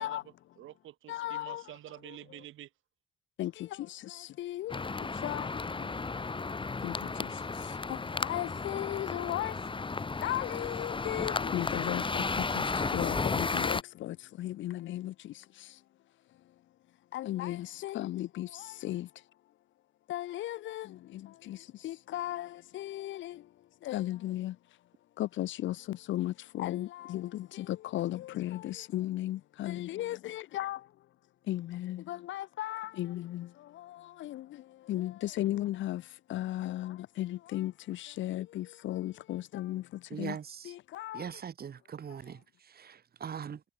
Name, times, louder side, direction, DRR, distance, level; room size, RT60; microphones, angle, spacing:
voice 1, 0.0-2.7, right 14 dB, 85° right, 4.7 m, -49 dB
voice 2, 1.1-1.7 2.0-2.2 3.4-5.9 6.8-7.0 7.6-9.7 10.2-15.8 17.1-19.1 20.1-23.5 23.8-24.6 25.2-30.9 31.5-40.4 40.6-41.3, left 14 dB, 75° left, 0.7 m, -36 dB
sound 1, 4.7-13.8, left 4 dB, 25° left, 2.1 m, -34 dB
voice 3, 40.1-40.7 41.1-43.6, right 7 dB, 50° right, 4.0 m, -41 dB
cardioid pair, 90°, 20 cm